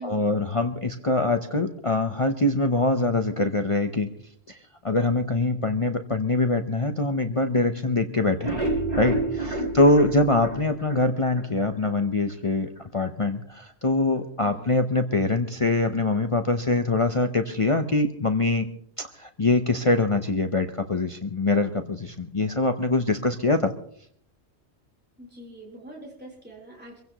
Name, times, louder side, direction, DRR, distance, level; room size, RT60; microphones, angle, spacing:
voice 1, 0.0-4.1 4.5-8.6 9.0-18.7 19.0-23.7, left 2 dB, 30° left, 6 dB, 0.9 m, -24 dB
sound 1, 8.2-11.5 11.8-11.9 12.3-12.4 12.8-12.9, right 2 dB, 35° right, 5.5 m, -29 dB
voice 2, 9.6-9.9 14.4-14.8 25.2-27.0, right 1 dB, 10° right, -2 dB, 3.9 m, -43 dB
25.5 x 16.0 x 3.0 m, 0.65 s
omnidirectional pair, 1.1 m